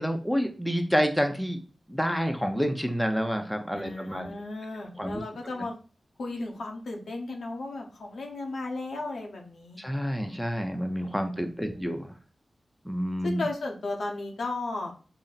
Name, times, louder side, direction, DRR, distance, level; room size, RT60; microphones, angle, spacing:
voice 1, 0.0-1.6 1.9-4.3 5.0-5.2 5.6-5.7 9.8-12.1 12.8-13.4, equal, 5° left, 5 dB, 0.6 m, -28 dB
voice 2, 3.7-5.7 6.2-9.8 11.7-12.0 13.2-14.9, left 2 dB, 85° left, 1 dB, 0.7 m, -35 dB
4.0 x 2.1 x 4.0 m, 0.38 s
wide cardioid pair, 70°, 0 cm